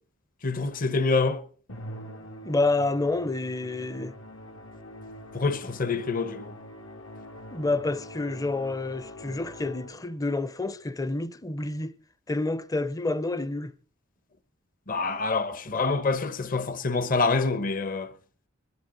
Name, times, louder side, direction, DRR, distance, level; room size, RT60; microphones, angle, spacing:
voice 1, 0.4-1.4 5.3-6.5 14.9-18.1, left 3 dB, 40° left, 1.0 m, -26 dB
Musical instrument, 1.7-10.2, equal, 75° left, 2.4 m, -44 dB
voice 2, 2.4-4.1 7.5-12.0 12.3-13.7, left 2 dB, 15° left, 0.6 m, -28 dB
21.5 x 13.5 x 3.9 m
head